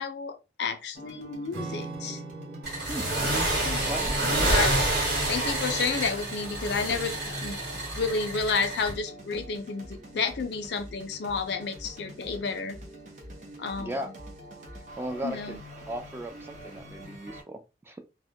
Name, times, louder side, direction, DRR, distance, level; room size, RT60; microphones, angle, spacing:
voice 1, 0.0-2.2 3.6-3.9 4.5-4.7 5.3-7.2 7.4-7.6 7.9-12.8 13.6-14.0 15.2-15.6, left 4 dB, 70° left, 0.4 m, -31 dB
sound 1, 0.9-17.4, equal, 45° right, 0.6 m, -45 dB
Acoustic guitar / Strum, 1.5-6.3, right 3 dB, 80° right, 0.7 m, -43 dB
sound 2, 2.6-8.9, right 1 dB, 60° right, 1.1 m, -28 dB
voice 2, 3.8-4.2 13.8-14.1 14.7-15.6 15.9-18.0, right 1 dB, 15° right, 0.3 m, -37 dB
2.1 x 2.1 x 2.7 m
head